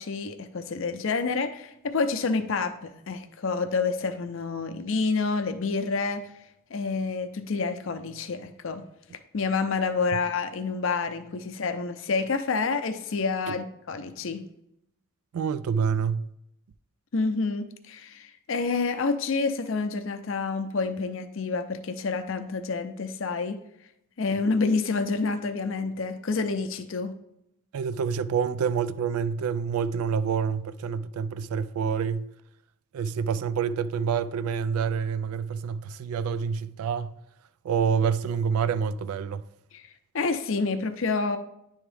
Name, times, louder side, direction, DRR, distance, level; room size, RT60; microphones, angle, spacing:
voice 1, 0.0-6.3 6.7-8.8 9.3-14.4 17.1-23.6 24.2-27.1 39.7-41.4, left 4 dB, 60° left, 0.5 m, -28 dB
voice 2, 15.3-16.3 27.7-32.3 32.9-37.2 37.6-39.4, right 6 dB, 80° right, 0.3 m, -27 dB
9.9 x 3.6 x 3.3 m
head